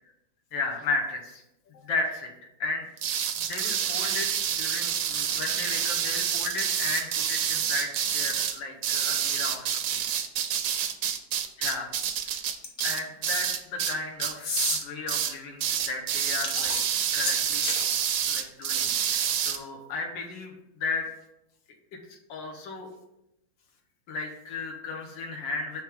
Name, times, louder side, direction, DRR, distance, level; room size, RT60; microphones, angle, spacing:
voice 1, 0.5-1.4 1.7-2.3 2.6-2.9 3.4-4.3 4.6-10.0 11.6-11.9 12.8-16.8 17.1-17.7 18.3-21.1 22.1-22.9 24.1-25.8, left 3 dB, 85° left, 2 dB, 1.8 m, -34 dB
sound 1, 3.0-13.9 14.2-14.8 15.1-15.3 15.6-19.6, right 9 dB, 70° right, 0.8 m, -28 dB
sound 2, 12.6-13.0 14.4-14.8 16.3-17.9, left 4 dB, 50° left, 1.1 m, -31 dB
6.2 x 3.6 x 5.2 m, 0.86 s
omnidirectional pair, 2.0 m